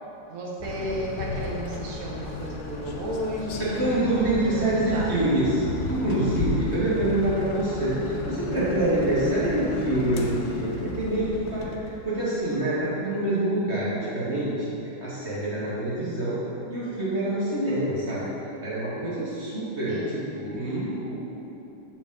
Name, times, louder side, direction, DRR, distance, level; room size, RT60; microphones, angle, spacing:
voice 1, 0.3-3.9 4.5-4.6 4.9-5.3 19.9-20.3, right 1 dB, 60° right, -3 dB, 0.9 m, -33 dB
sound 1, 0.6-12.6, left 3 dB, 85° left, 0.8 m, -34 dB
voice 2, 3.7-14.7 15.0-16.4 16.7-18.2 18.6-21.2, right 1 dB, 40° right, -8 dB, 1.1 m, -26 dB
7.1 x 4.9 x 3.6 m, 3.0 s
omnidirectional pair, 2.3 m